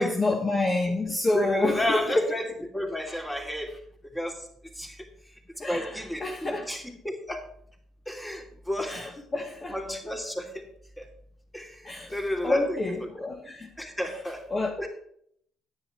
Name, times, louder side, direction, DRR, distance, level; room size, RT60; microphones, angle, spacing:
voice 1, 0.0-2.3 3.1-3.2 5.6-5.9 6.2-6.7 8.9-9.7 11.8-12.2 12.4-13.7 14.5-14.7, left 2 dB, 35° left, 0 dB, 1.4 m, -27 dB
voice 2, 1.3-2.5 2.7-3.7 4.1-5.3 5.7-7.4 8.1-9.1 9.7-10.6 11.0-11.1 11.5-13.1 13.8-14.4 14.8-14.9, left 1 dB, 10° left, 1 dB, 2.8 m, -32 dB
9.7 x 8.8 x 4.4 m, 0.67 s
supercardioid pair, 65°, 0 cm